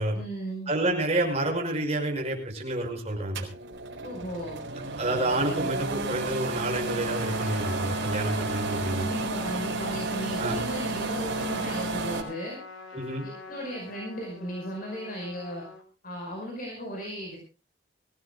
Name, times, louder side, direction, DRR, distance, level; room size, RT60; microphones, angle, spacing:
voice 1, 0.1-0.7 4.0-4.6 8.9-12.6 13.5-15.7 16.0-17.4, equal, 45° left, 0 dB, 5.3 m, -36 dB
voice 2, 0.7-3.5 5.0-9.1 10.4-10.6 12.9-13.2, right 1 dB, 35° right, 1 dB, 6.0 m, -29 dB
sound 1, 3.3-12.2, right 3 dB, 75° right, 4.5 m, -32 dB
Trumpet, 7.0-15.8, left 3 dB, 80° left, 4.4 m, -44 dB
25.0 x 17.0 x 2.3 m, 0.33 s
head